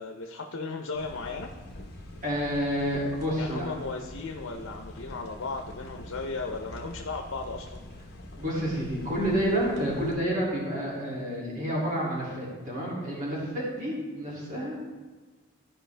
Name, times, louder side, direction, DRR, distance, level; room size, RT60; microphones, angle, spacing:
voice 1, 0.0-1.5 3.4-7.9, left 3 dB, 85° left, 3 dB, 0.8 m, -36 dB
sound 1, 0.9-10.1, left 1 dB, 50° left, 1.1 m, -44 dB
voice 2, 2.2-3.6 8.4-14.8, equal, 40° right, -6 dB, 2.6 m, -29 dB
14.0 x 5.1 x 3.4 m, 1.3 s
head